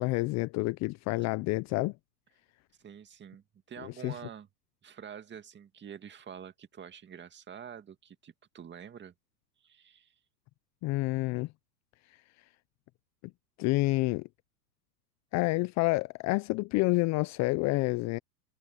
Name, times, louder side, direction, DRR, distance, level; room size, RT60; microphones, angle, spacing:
voice 1, 0.0-1.9 3.8-4.1 10.8-11.5 13.6-14.3 15.3-18.2, left 22 dB, 35° left, 0.7 m, -28 dB
voice 2, 2.8-4.5 4.8-9.1 9.6-10.1, right 8 dB, 20° right, 2.2 m, -47 dB
hypercardioid pair, 110°, 50 cm